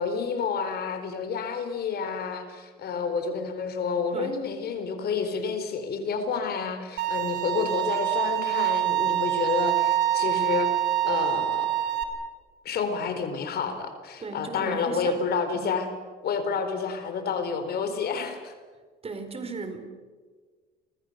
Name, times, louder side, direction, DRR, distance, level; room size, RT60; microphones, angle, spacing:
voice 1, 0.0-10.7 11.0-11.7 12.6-15.9 16.2-18.5, left 5 dB, 55° left, 8 dB, 4.2 m, -29 dB
Bowed string instrument, 7.0-12.0, right 13 dB, 70° right, 3.5 m, -25 dB
voice 2, 14.2-15.1 15.5-15.7 19.0-19.9, right 3 dB, 30° right, 8 dB, 4.4 m, -36 dB
30.0 x 24.5 x 6.7 m, 1.5 s
cardioid pair, 95°, 19 cm